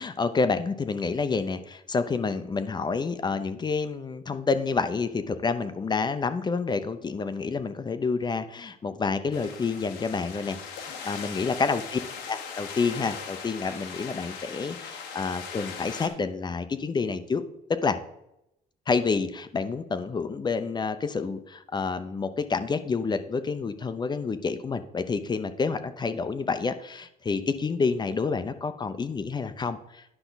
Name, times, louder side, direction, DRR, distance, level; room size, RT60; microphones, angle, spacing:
voice 1, 0.0-10.6 10.8-12.0 12.3-17.4 17.7-18.0 18.9-30.0, left 4 dB, 25° left, 11 dB, 0.7 m, -28 dB
sound 1, 9.3-16.1, left 6 dB, 85° left, 1.3 m, -39 dB
10.0 x 5.8 x 4.0 m, 0.83 s
cardioid pair, 110°, 17 cm